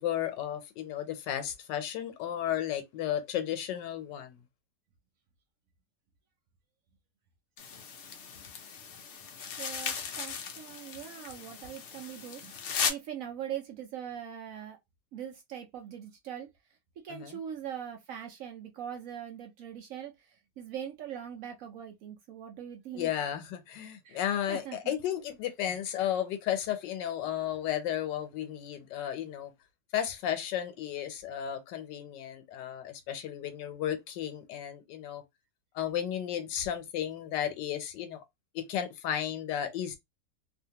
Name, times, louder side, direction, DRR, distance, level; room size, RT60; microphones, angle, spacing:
voice 1, 0.0-4.4 17.1-17.4 22.9-29.5 29.9-35.2 35.7-38.2 38.5-40.0, left 10 dB, 90° left, 1.3 m, -33 dB
sound 1, 7.6-12.9, left 6 dB, 70° left, 0.6 m, -37 dB
voice 2, 9.6-14.8 15.1-16.5 17.0-23.1 24.0-24.2 24.5-24.9, right 9 dB, 70° right, 0.8 m, -42 dB
2.8 x 2.5 x 2.8 m
omnidirectional pair, 1.9 m